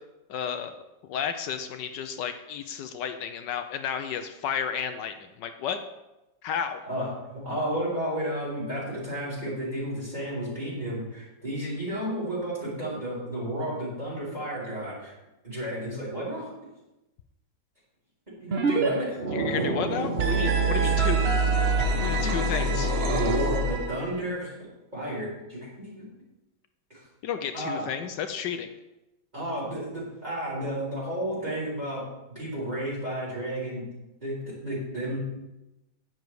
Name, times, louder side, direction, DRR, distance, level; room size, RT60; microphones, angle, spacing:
voice 1, 0.3-0.8 1.0-5.8 6.4-6.8 19.3-21.3 22.0-22.9 27.2-28.7, left 8 dB, 80° left, 8 dB, 1.3 m, -32 dB
voice 2, 6.9-15.1 15.4-16.5 18.4-19.2 20.7-20.9 22.0-22.3 22.6-22.7 23.1-24.5 24.9-26.1 26.9-27.1 27.5-27.8 29.3-32.0 32.3-33.8 34.2-35.2, right 1 dB, 25° right, -8 dB, 4.4 m, -32 dB
sound 1, 18.5-18.9 19.1-24.1, right 3 dB, 40° right, 1.1 m, -25 dB
10.0 x 9.4 x 4.7 m, 0.98 s
omnidirectional pair, 1.9 m